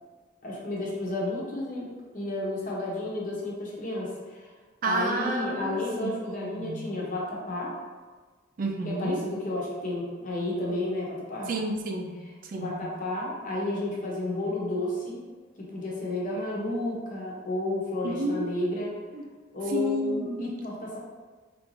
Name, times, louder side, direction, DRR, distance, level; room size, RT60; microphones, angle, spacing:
voice 1, 0.4-1.9 2.1-4.5 4.8-7.7 8.8-11.5 12.5-15.2 15.6-18.9 19.5-21.0, left 1 dB, 45° left, -4 dB, 0.8 m, -31 dB
voice 2, 4.8-6.9 8.6-9.2 11.5-12.9 18.0-18.8 19.1-19.2 19.7-20.5, right 1 dB, 45° right, 3 dB, 0.3 m, -31 dB
3.3 x 2.5 x 3.1 m, 1.4 s
head